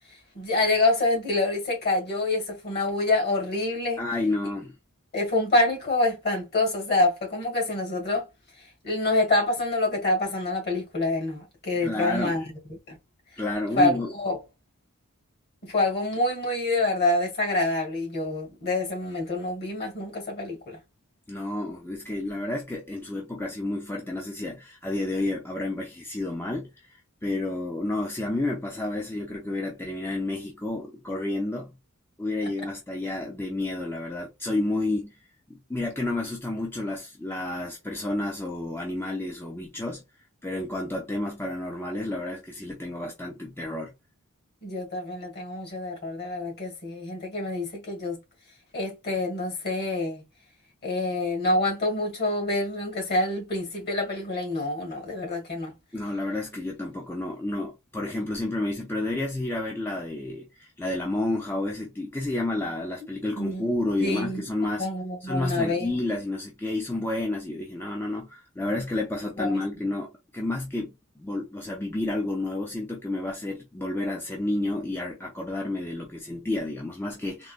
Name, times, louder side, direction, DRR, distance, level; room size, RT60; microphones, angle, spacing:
voice 1, 0.3-4.0 5.1-8.3 8.8-12.4 12.7-13.0 13.8-14.4 15.6-20.8 32.4-32.5 44.6-48.2 48.7-50.2 50.8-55.7 63.3-63.7 64.0-64.4 64.8-65.9 69.4-69.6, left 2 dB, 45° left, 1.6 m, -26 dB
voice 2, 4.0-4.7 11.8-12.4 13.3-14.1 21.3-31.7 32.2-35.2 35.5-40.0 40.4-43.9 55.9-64.9 65.2-77.5, left 2 dB, 10° left, 0.5 m, -30 dB
3.7 x 2.1 x 2.4 m
head